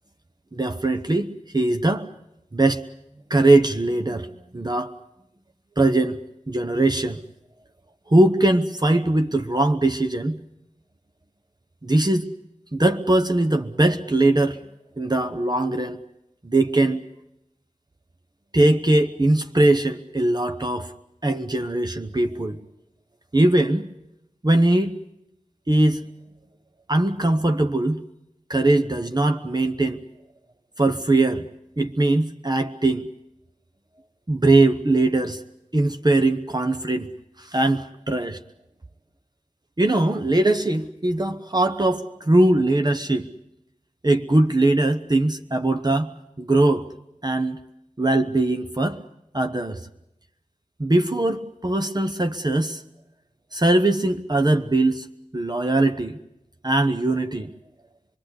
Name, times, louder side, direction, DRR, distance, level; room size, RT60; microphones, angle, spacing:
voice 1, 0.5-2.1 2.5-2.9 3.3-4.9 5.8-6.2 6.5-7.2 8.1-10.4 11.8-12.3 12.7-14.6 15.0-16.0 16.4-17.0 18.5-20.9 21.2-22.6 23.3-23.9 24.4-25.0 25.7-26.1 26.9-28.0 28.5-30.0 30.8-31.5 31.8-33.1 34.3-35.4 35.7-37.1 37.4-38.4 39.8-43.3 44.0-46.9 47.2-47.6 48.0-49.0 49.3-49.8 50.8-52.8 53.5-55.1 55.3-56.2 56.6-57.5, right 2 dB, 30° right, 7 dB, 0.9 m, -21 dB
26.0 x 21.5 x 8.1 m, 0.85 s
wide cardioid pair, 55°, 13 cm